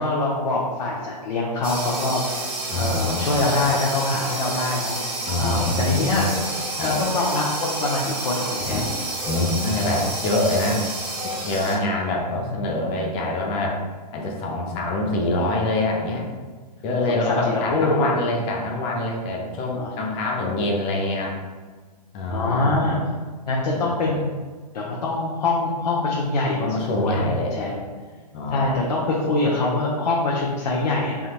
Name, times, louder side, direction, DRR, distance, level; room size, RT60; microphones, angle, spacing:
voice 1, 0.0-2.2 2.8-5.0 5.4-6.5 6.8-8.8 17.1-17.2 17.5-18.1 19.7-20.0 22.3-23.0 23.5-24.4 24.7-27.8 28.5-31.3, left 2 dB, 75° left, -4 dB, 0.7 m, -24 dB
sound 1, 1.6-11.8, right 2 dB, 50° right, 1.5 m, -29 dB
voice 2, 2.7-3.4 5.3-6.2 6.7-6.9 8.6-8.8 9.3-10.8 11.4-13.8 14.1-16.3 16.8-21.4 22.1-23.0 23.7-24.2 26.6-27.5 28.3-28.7, left 2 dB, 25° left, 0 dB, 0.5 m, -25 dB
3.5 x 2.3 x 2.8 m, 1.4 s
hypercardioid pair, 135°, 21 cm